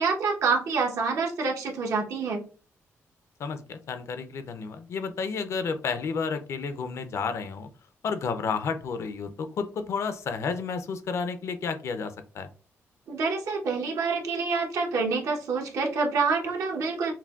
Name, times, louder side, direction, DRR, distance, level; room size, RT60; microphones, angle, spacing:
voice 1, 0.0-2.4 13.1-17.1, right 4 dB, 80° right, 0 dB, 1.0 m, -27 dB
voice 2, 3.4-7.7 8.0-12.5, left 5 dB, 65° left, 9 dB, 0.5 m, -31 dB
5.8 x 2.2 x 2.3 m, 0.37 s
wide cardioid pair, 140°, 5 cm